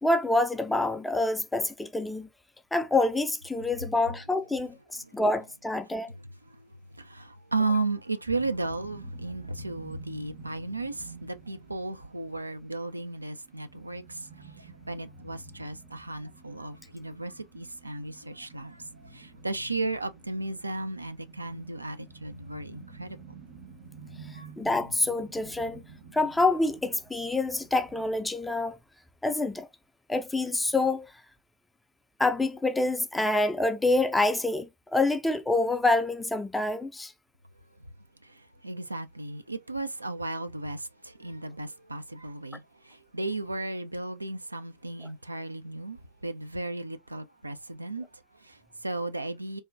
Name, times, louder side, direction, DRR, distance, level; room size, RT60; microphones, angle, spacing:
voice 1, 0.0-2.3 2.7-6.1 24.6-25.8 26.1-28.8 29.2-29.7 30.1-31.1 32.2-37.1, left 2 dB, 5° left, 0.4 m, -26 dB
voice 2, 6.9-23.2 24.3-24.5 38.2-49.6, right 2 dB, 85° right, 0.3 m, -35 dB
sound 1, 8.2-28.1, right 4 dB, 60° right, 1.0 m, -50 dB
3.3 x 2.1 x 2.5 m
figure-of-eight pair, 90°, 0 cm